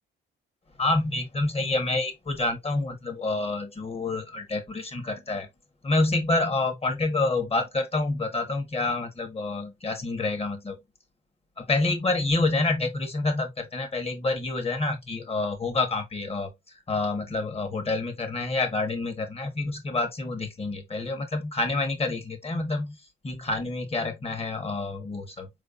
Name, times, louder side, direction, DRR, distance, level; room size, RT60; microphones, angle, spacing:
voice 1, 0.8-5.5 5.8-10.8 11.6-16.5 16.9-23.0 23.2-25.5, left 2 dB, 30° left, 1.5 m, -28 dB
4.6 x 3.3 x 2.7 m
cardioid pair, 90°, 20 cm